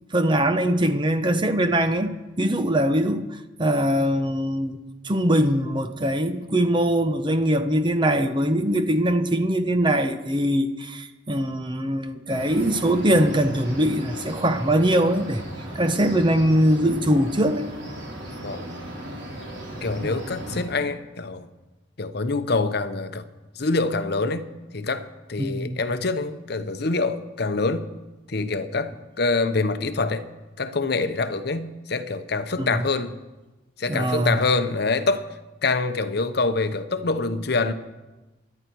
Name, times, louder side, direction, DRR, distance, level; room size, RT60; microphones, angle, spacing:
voice 1, 0.1-4.8 5.0-15.4 15.7-17.7 20.0-20.1 25.4-25.8 32.6-32.8 33.9-34.4, right 1 dB, 25° right, 0.8 m, -22 dB
sound 1, 12.3-20.6, right 1 dB, 65° right, 3.4 m, -37 dB
voice 2, 19.8-21.5 22.0-23.3 23.6-24.5 24.7-27.9 28.3-30.2 30.6-33.1 33.8-35.3 35.6-37.7, left 3 dB, 55° left, 0.8 m, -25 dB
25.0 x 11.0 x 4.6 m
head